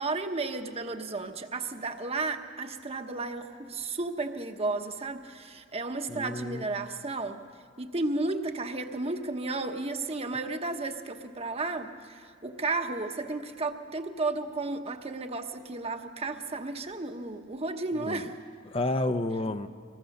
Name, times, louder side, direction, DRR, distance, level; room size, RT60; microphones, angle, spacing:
voice 1, 0.0-7.4 7.8-18.4, right 3 dB, 35° right, 6 dB, 1.1 m, -33 dB
voice 2, 6.1-6.7 18.0-18.2 18.7-19.7, left 2 dB, 30° left, 8 dB, 0.7 m, -30 dB
25.5 x 20.0 x 6.6 m, 2.2 s
head